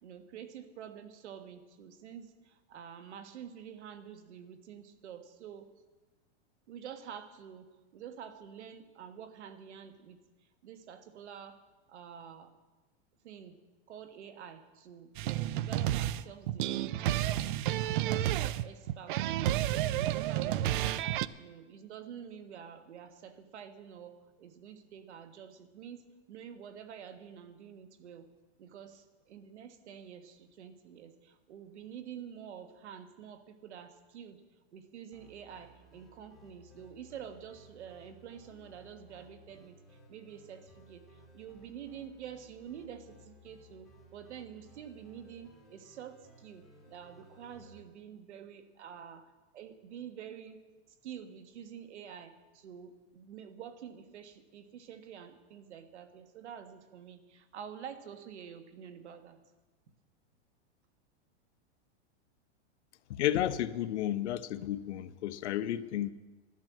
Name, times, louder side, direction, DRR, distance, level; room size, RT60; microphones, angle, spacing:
voice 1, 0.0-5.7 6.7-10.2 10.6-11.6 11.9-12.5 13.2-13.6 13.9-17.5 17.8-19.2 19.5-21.1 21.4-28.3 28.6-34.4 34.7-50.6 50.9-59.4, right 8 dB, 90° right, 1.6 m, -48 dB
sound 1, 15.2-21.3, right 13 dB, 50° right, 0.5 m, -31 dB
sound 2, 35.1-47.8, equal, ahead, 2.3 m, -59 dB
voice 2, 63.1-66.1, left 12 dB, 85° left, 0.9 m, -32 dB
12.0 x 12.0 x 7.5 m
supercardioid pair, 165°, 33 cm